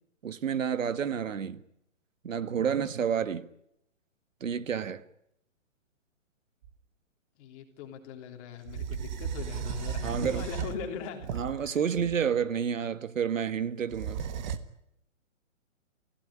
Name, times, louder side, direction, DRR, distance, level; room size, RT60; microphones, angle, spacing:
voice 1, 0.2-1.6 2.2-3.5 4.4-5.0 10.0-10.5 11.3-14.2, right 7 dB, 85° right, 1.7 m, -30 dB
sound 1, 6.6-6.7 8.7-12.3 13.9-14.6, right 7 dB, 35° right, 1.5 m, -35 dB
voice 2, 7.4-11.8, left 7 dB, 25° left, 3.4 m, -41 dB
27.5 x 16.0 x 10.0 m
hypercardioid pair, 160°, 38 cm